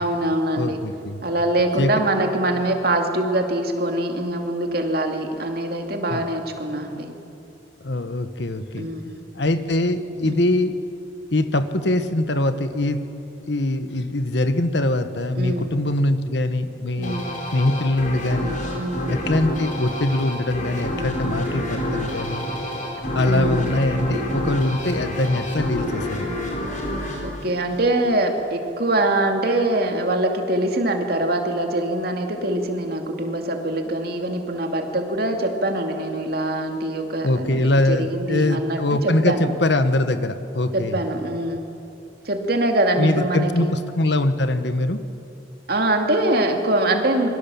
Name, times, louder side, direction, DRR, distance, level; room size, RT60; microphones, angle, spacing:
voice 1, 0.0-0.8 1.2-7.1 8.8-9.2 10.2-10.5 15.4-15.7 17.0-17.3 18.7-19.1 23.3-23.7 27.2-39.5 40.7-41.6 42.2-43.7 45.7-47.3, right 1 dB, 50° right, 3 dB, 2.5 m, -23 dB
voice 2, 0.5-1.2 1.8-2.0 6.1-6.2 7.8-8.9 9.3-10.8 11.3-13.0 13.5-17.2 17.5-18.6 19.1-22.4 23.1-26.3 37.2-41.0 43.0-45.0, left 1 dB, 65° left, 10 dB, 1.2 m, -22 dB
sound 1, 17.0-28.3, left 1 dB, 40° left, 4.6 m, -28 dB
27.0 x 22.5 x 7.1 m, 2.8 s
head